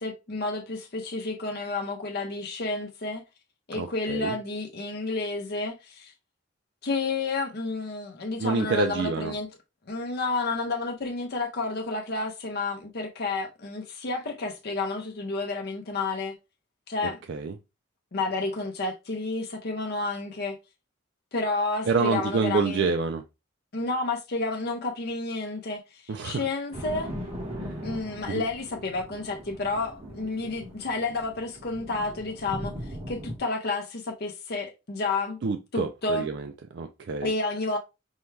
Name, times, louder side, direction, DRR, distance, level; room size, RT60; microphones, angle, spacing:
voice 1, 0.0-3.2 3.7-6.1 6.8-9.5 9.9-16.4 16.9-17.2 18.1-20.6 21.3-22.9 23.7-27.1 27.8-35.4 35.7-36.3 37.2-37.8, left 3 dB, 50° left, 0.6 m, -30 dB
voice 2, 3.7-4.3 8.4-9.3 17.3-17.5 21.9-23.2 26.1-26.4 27.6-27.7 28.3-28.4 35.4-37.3, right 4 dB, 60° right, 0.4 m, -27 dB
sound 1, 26.7-33.4, equal, 35° right, 1.2 m, -39 dB
5.4 x 2.3 x 3.2 m
head